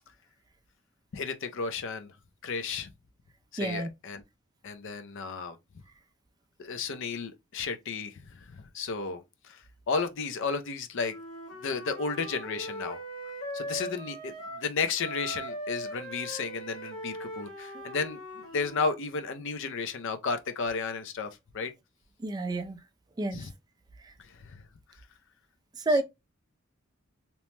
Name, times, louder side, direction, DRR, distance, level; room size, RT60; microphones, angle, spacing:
voice 1, 1.1-2.1 2.4-2.9 3.5-4.2 4.6-5.6 6.6-11.1 11.5-13.0 13.5-21.7 23.3-23.5 24.2-24.6, left 4 dB, 60° left, 0.5 m, -33 dB
voice 2, 3.6-3.9 22.2-22.8 23.2-23.5 24.0-24.1 25.8-26.0, right 2 dB, 20° right, 0.3 m, -29 dB
Wind instrument woodwind instrument, 11.0-14.7 15.0-18.9, equal, 85° left, 1.4 m, -40 dB
2.9 x 2.1 x 3.1 m
head